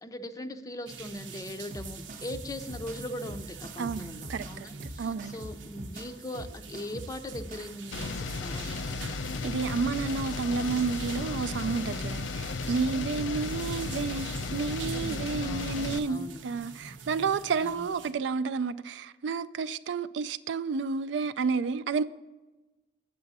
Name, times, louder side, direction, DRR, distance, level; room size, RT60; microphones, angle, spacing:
voice 1, 0.0-8.8 14.9-15.7 16.0-16.4 17.6-17.9, left 1 dB, 20° left, 0.5 m, -40 dB
sound 1, 0.9-18.1, right 5 dB, 90° right, 0.8 m, -45 dB
sound 2, 1.7-7.7, right 1 dB, 45° right, 0.7 m, -43 dB
voice 2, 3.8-4.7 5.0-5.3 9.4-22.0, right 5 dB, 75° right, 0.3 m, -31 dB
sound 3, 7.9-16.0, left 4 dB, 90° left, 0.5 m, -34 dB
7.4 x 6.9 x 4.1 m
head